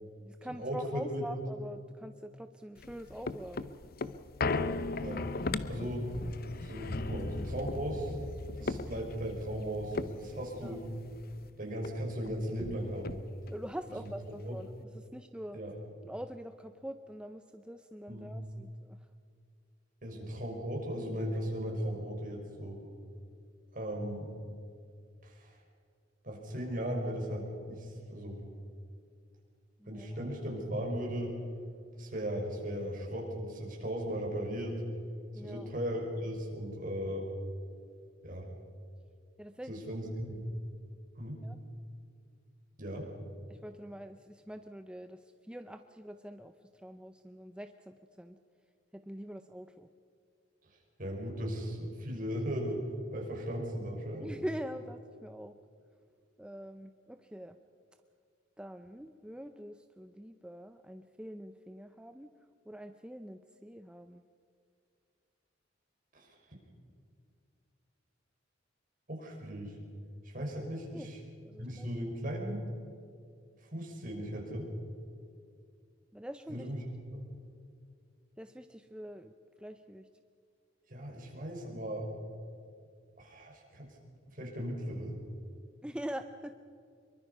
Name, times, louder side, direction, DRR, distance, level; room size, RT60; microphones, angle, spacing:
voice 1, 0.0-3.7 4.6-4.8 10.6-10.8 13.5-14.7 14.9-15.6 16.0-19.0 29.8-30.1 35.3-35.7 39.4-39.7 41.4-41.6 43.5-45.2 45.5-46.5 46.8-48.4 48.9-49.9 54.2-55.5 56.4-57.6 58.6-62.3 62.7-64.2 70.9-71.1 71.4-71.9 76.1-76.7 78.4-79.3 79.6-80.1 85.8-86.5, equal, 5° right, 8 dB, 0.6 m, -44 dB
voice 2, 0.6-1.3 5.0-5.2 5.7-6.1 6.6-8.2 8.6-10.8 11.6-13.2 13.9-14.6 15.5-15.7 18.1-18.4 20.0-22.8 23.7-24.3 25.2-25.6 26.2-28.5 29.9-31.3 32.0-34.8 35.3-37.3 38.2-38.5 39.7-40.5 41.2-41.4 42.8-43.1 51.0-54.3 66.1-66.3 69.1-69.8 70.2-71.2 71.6-72.6 73.6-74.7 76.5-77.2 80.9-82.1 83.2-83.9 84.3-85.2, equal, 45° right, -1 dB, 5.6 m, -37 dB
sound 1, 2.8-11.5 11.8-11.9 12.2-13.6 14.1-14.2, left 3 dB, 55° left, 0.7 m, -37 dB
25.0 x 23.0 x 5.5 m, 2.3 s
head